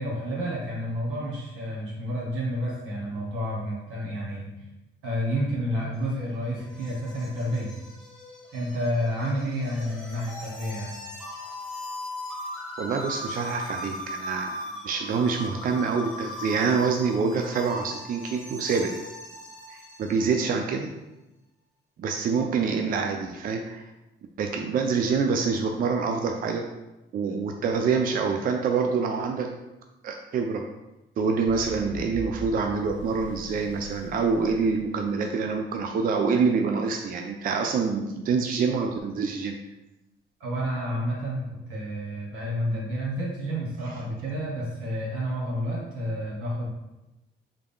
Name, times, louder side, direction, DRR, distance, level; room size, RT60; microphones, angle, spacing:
voice 1, 0.0-4.5 5.0-7.7 8.5-10.9 40.4-46.7, equal, 90° right, -4 dB, 1.4 m, -30 dB
sound 1, 5.9-20.5, left 1 dB, 5° left, 0.9 m, -39 dB
voice 2, 12.8-18.9 19.7-20.9 22.0-23.8 24.4-26.6 27.1-29.5 30.0-30.6 31.2-39.6, right 5 dB, 45° right, 3 dB, 0.4 m, -26 dB
sound 2, 31.5-35.6, right 2 dB, 70° left, 0.7 m, -42 dB
3.5 x 2.3 x 3.5 m, 0.99 s
cardioid pair, 90°, 20 cm